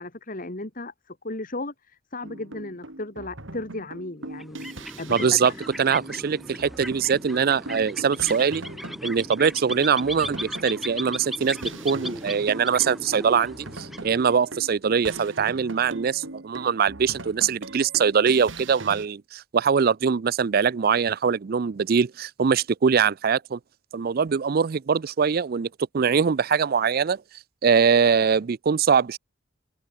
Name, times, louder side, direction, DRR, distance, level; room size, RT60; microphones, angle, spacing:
voice 1, 0.0-4.7 5.0-5.6, left 2 dB, 45° left, 2.1 m, -35 dB
sound 1, 2.2-19.1, right 2 dB, 70° right, 4.6 m, -41 dB
sound 2, 4.3-14.7, equal, ahead, 3.5 m, -37 dB
voice 2, 5.1-5.5 5.8-8.6 9.0-23.6 23.9-25.7 25.9-27.2 27.6-29.2, right 6 dB, 50° right, 0.4 m, -22 dB
head